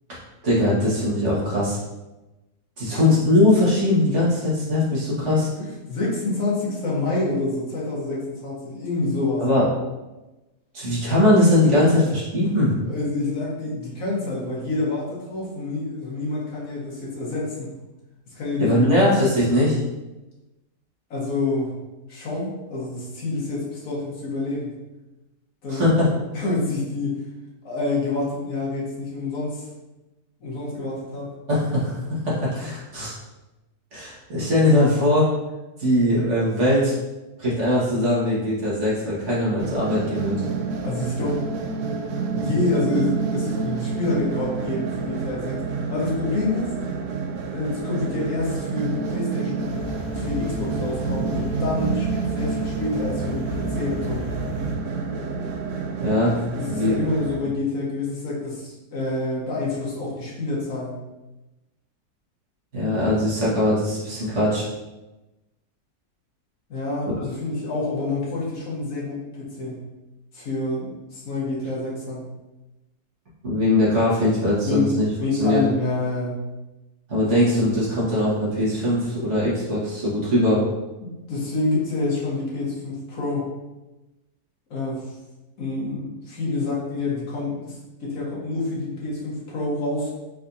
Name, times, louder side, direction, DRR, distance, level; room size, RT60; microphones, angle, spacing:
voice 1, 0.4-1.8 2.8-5.5 9.4-9.7 10.7-12.7 18.6-19.8 25.7-25.9 31.5-33.1 33.9-35.3 35.8-36.9 37.4-40.3 56.0-56.4 56.6-57.0 62.7-64.7 67.1-67.2 73.4-75.1 75.4-75.6 77.1-80.6, left 1 dB, 45° right, -7 dB, 1.9 m, -20 dB
voice 2, 5.6-9.5 12.9-17.7 18.3-19.0 21.1-21.8 22.1-24.8 25.6-25.8 26.3-27.2 27.6-29.7 30.4-31.3 40.8-41.5 42.3-45.6 45.9-46.7 47.5-49.8 50.2-54.3 56.6-61.0 66.7-69.8 70.3-72.3 74.6-76.4 81.0-83.5 84.7-85.2 85.6-90.1, left 2 dB, 50° left, -5 dB, 1.7 m, -27 dB
sound 1, 39.6-57.4, right 5 dB, 80° right, 0.6 m, -29 dB
sound 2, 49.7-54.8, left 2 dB, 70° left, 0.6 m, -34 dB
4.6 x 4.2 x 2.7 m, 1.0 s
omnidirectional pair, 1.9 m